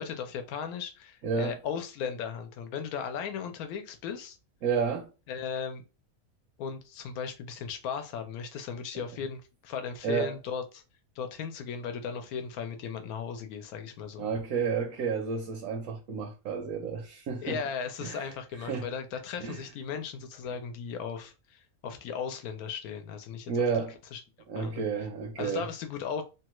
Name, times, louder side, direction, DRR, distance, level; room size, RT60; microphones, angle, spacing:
voice 1, 0.0-4.4 5.3-5.8 6.6-10.8 11.2-14.3 17.4-23.5 24.1-24.2 24.6-24.8 25.4-26.2, left 6 dB, 85° left, 1.1 m, -36 dB
voice 2, 1.2-1.6 4.6-5.1 10.0-10.3 14.2-17.6 18.0-18.3 18.6-18.9 19.4-19.6 23.5-23.9 24.5-25.7, right 5 dB, 75° right, 1.0 m, -31 dB
3.0 x 2.3 x 3.0 m
omnidirectional pair, 1.5 m